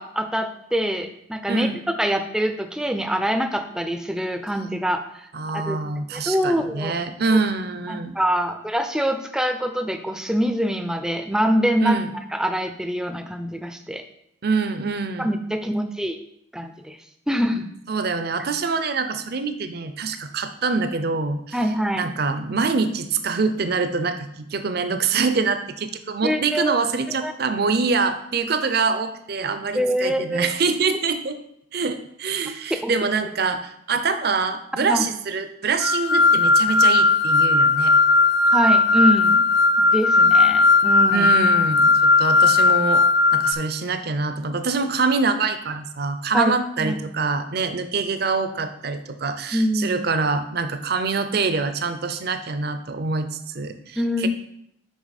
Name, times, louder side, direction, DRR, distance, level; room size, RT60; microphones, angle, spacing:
voice 1, 0.0-5.8 6.1-6.9 7.9-12.0 12.3-14.0 15.2-16.2 16.5-17.0 17.3-17.7 21.5-22.1 26.2-26.8 27.2-27.3 29.7-30.5 32.8-32.9 34.8-35.1 38.5-39.4 39.8-41.3 46.3-46.5 46.8-47.0 49.5-50.0 54.0-54.3, equal, 5° right, 7 dB, 0.4 m, -24 dB
voice 2, 1.5-1.8 5.3-8.2 11.8-12.1 14.4-15.3 17.9-21.6 21.9-31.4 31.7-37.9 41.1-43.0 43.3-53.3 53.5-54.3, right 4 dB, 50° right, 9 dB, 0.6 m, -25 dB
sound 1, 35.8-43.5, left 3 dB, 60° left, 0.4 m, -17 dB
6.1 x 5.4 x 4.1 m, 0.75 s
head